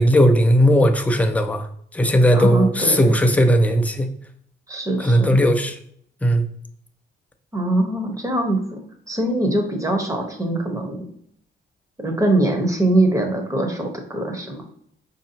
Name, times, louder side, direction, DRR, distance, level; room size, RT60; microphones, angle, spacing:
voice 1, 0.0-1.7 1.9-4.1 5.0-5.8 6.2-6.5, equal, 5° left, 5 dB, 0.5 m, -17 dB
voice 2, 2.3-3.1 4.7-5.4 7.5-8.8 9.1-11.0 12.0-14.6, right 1 dB, 15° right, 2 dB, 1.0 m, -22 dB
4.6 x 2.7 x 2.8 m, 0.65 s
cardioid pair, 90°, 20 cm